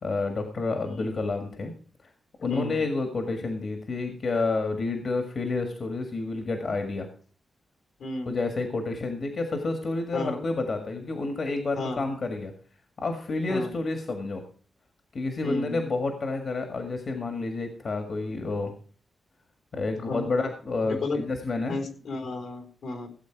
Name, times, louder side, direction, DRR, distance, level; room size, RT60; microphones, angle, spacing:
voice 1, 0.0-1.7 2.4-7.1 8.2-12.5 13.0-14.4 15.1-18.7 19.7-21.8, left 3 dB, 45° left, 5 dB, 1.8 m, -29 dB
voice 2, 2.5-2.8 8.0-8.4 10.1-10.4 11.8-12.1 13.5-13.7 15.4-15.8 20.1-20.3 20.8-21.2 21.7-23.1, left 2 dB, 80° left, 5 dB, 4.0 m, -33 dB
16.5 x 8.5 x 4.7 m, 0.43 s
wide cardioid pair, 165°, 0 cm